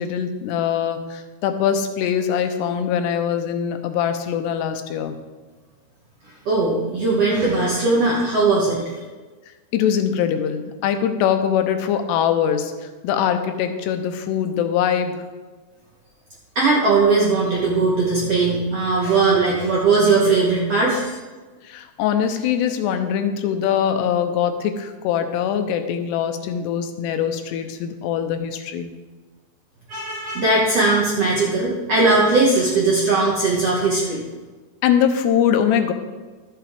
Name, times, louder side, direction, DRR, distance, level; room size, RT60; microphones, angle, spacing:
voice 1, 0.0-5.2 9.7-15.2 21.6-28.9 34.8-35.9, left 8 dB, 90° left, 7 dB, 2.9 m, -22 dB
voice 2, 6.4-8.8 16.5-21.2 29.9-34.2, right 3 dB, 65° right, -5 dB, 1.6 m, -19 dB
12.5 x 8.5 x 3.6 m, 1.3 s
omnidirectional pair, 4.8 m